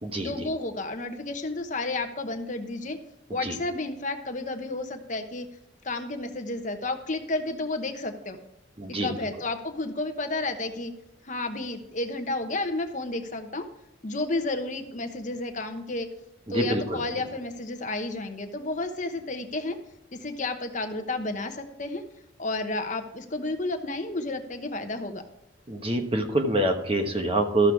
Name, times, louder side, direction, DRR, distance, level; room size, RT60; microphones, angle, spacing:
voice 1, 0.2-3.0 3.3-5.5 5.8-8.4 9.0-10.9 11.2-13.7 14.0-16.1 16.5-19.8 20.1-22.0 22.4-25.2, left 2 dB, 40° left, 6 dB, 1.0 m, -31 dB
voice 2, 8.8-9.1 16.5-17.0 25.7-27.7, right 1 dB, 30° right, 4 dB, 1.2 m, -25 dB
13.5 x 6.7 x 4.7 m, 0.84 s
head